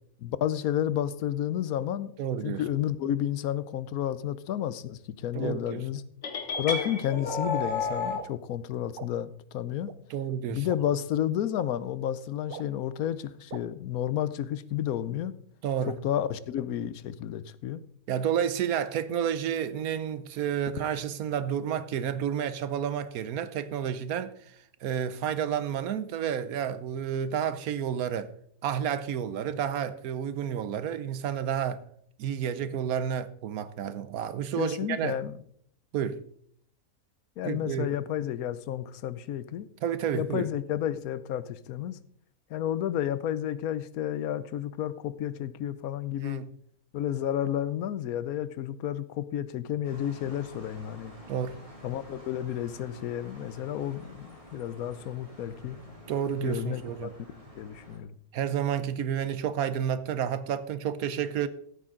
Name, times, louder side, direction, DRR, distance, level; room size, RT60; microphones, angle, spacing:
voice 1, 0.2-2.1 2.4-6.0 6.6-9.9 10.5-15.3 15.9-17.8 34.6-35.4 37.4-39.7 40.1-42.0 42.5-46.4 46.9-51.1 51.8-55.8 56.4-58.2, left 11 dB, 75° left, 1.1 m, -31 dB
voice 2, 2.2-2.6 5.3-5.8 10.1-10.7 15.6-15.9 18.1-24.3 24.8-28.3 28.6-31.8 32.2-35.2 35.9-36.2 37.4-38.0 39.8-40.5 46.2-46.5 51.3-51.6 56.1-57.1 58.3-61.5, right 9 dB, 75° right, 1.2 m, -30 dB
sound 1, 6.2-8.2, left 4 dB, 50° left, 1.6 m, -31 dB
sound 2, 6.5-6.6 7.3-7.4 8.1-8.3 9.0-9.1 9.9-10.0 10.7-10.8 11.6-11.7 12.5-12.6 13.5-13.6, right 9 dB, 55° right, 0.6 m, -40 dB
sound 3, 49.8-58.0, equal, 20° right, 2.8 m, -49 dB
14.0 x 8.6 x 3.8 m
omnidirectional pair, 1.6 m